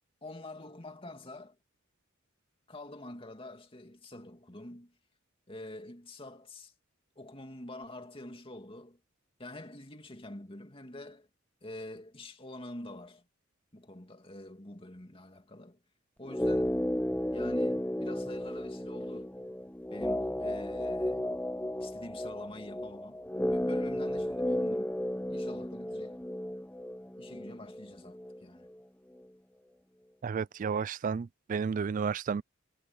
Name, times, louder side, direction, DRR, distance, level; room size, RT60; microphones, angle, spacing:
voice 1, 0.2-1.6 2.7-4.9 5.5-6.7 7.2-9.0 9.4-11.3 11.6-13.2 13.7-15.8 16.2-16.7 17.3-19.4 19.9-21.3 21.8-23.2 23.5-25.0 25.3-26.3 27.2-28.7, left 1 dB, 25° left, 2.5 m, -46 dB
sound 1, 16.3-28.4 28.6-28.7, left 1 dB, 5° left, 0.8 m, -33 dB
voice 2, 30.2-32.4, right 6 dB, 40° right, 0.3 m, -32 dB
head